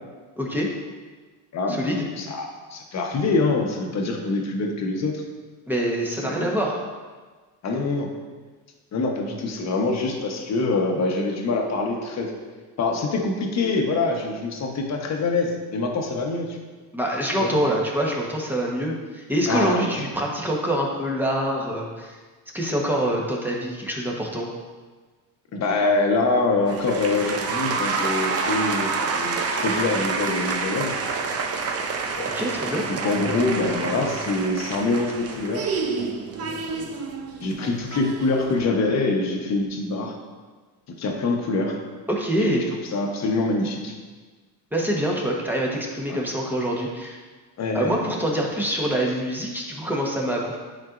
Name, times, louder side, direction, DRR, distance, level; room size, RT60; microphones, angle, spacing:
voice 1, 0.4-0.7 1.7-2.0 5.7-6.8 16.9-22.2 22.5-24.5 32.3-32.9 42.1-42.6 44.7-47.2 47.7-50.6, right 1 dB, 5° right, -2 dB, 1.1 m, -25 dB
voice 2, 1.5-5.2 6.1-6.6 7.6-8.1 8.9-12.3 12.8-16.6 17.4-17.6 19.5-19.9 25.5-31.0 32.9-35.7 36.4-36.9 37.4-40.2 40.9-41.8 42.4-42.6 42.9-44.0 46.1-46.2 47.6-48.2, left 3 dB, 40° left, 2 dB, 1.1 m, -25 dB
sound 1, 26.7-38.6, right 4 dB, 35° right, 0.6 m, -28 dB
10.5 x 4.4 x 2.5 m, 1.4 s
cardioid pair, 120°, 42 cm